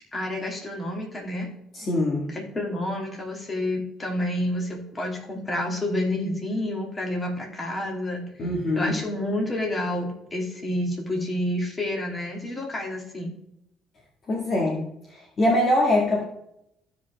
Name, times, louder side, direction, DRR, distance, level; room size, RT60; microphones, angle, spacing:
voice 1, 0.1-1.5 2.3-8.2 8.8-13.3, left 1 dB, 20° left, 0 dB, 2.4 m, -29 dB
voice 2, 1.7-2.3 8.4-8.9 14.3-14.8 15.1-16.2, left 1 dB, 40° left, -1 dB, 1.8 m, -23 dB
15.0 x 5.2 x 3.4 m, 0.78 s
cardioid pair, 130°, 0 cm